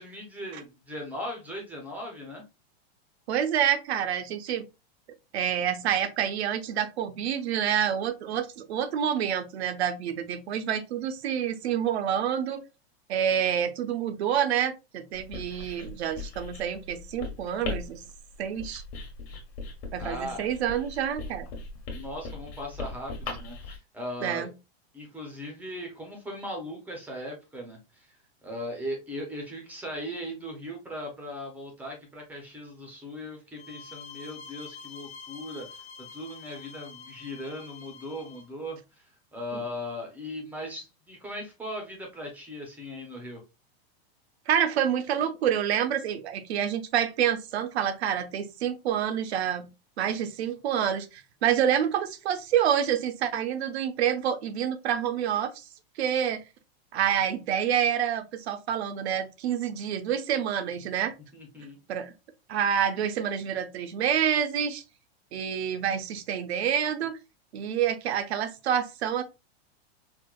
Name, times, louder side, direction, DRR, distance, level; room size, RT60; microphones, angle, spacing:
voice 1, 0.0-2.4 20.0-20.5 21.9-24.5 24.9-28.2 28.4-39.0 39.3-43.4 61.3-61.8, equal, 5° right, 0.4 m, -38 dB
voice 2, 3.3-4.6 5.3-12.6 13.1-18.0 18.4-18.8 19.9-21.5 24.2-24.5 44.5-49.7 50.0-55.6 56.0-56.4 56.9-61.1 61.9-62.1 62.5-64.8 65.3-67.2 67.5-69.2, right 9 dB, 85° right, 0.7 m, -27 dB
Writing, 15.1-23.8, left 3 dB, 30° left, 0.9 m, -39 dB
sound 1, 33.6-38.5, left 5 dB, 80° left, 0.8 m, -46 dB
4.4 x 2.1 x 2.2 m
supercardioid pair, 160°, 31 cm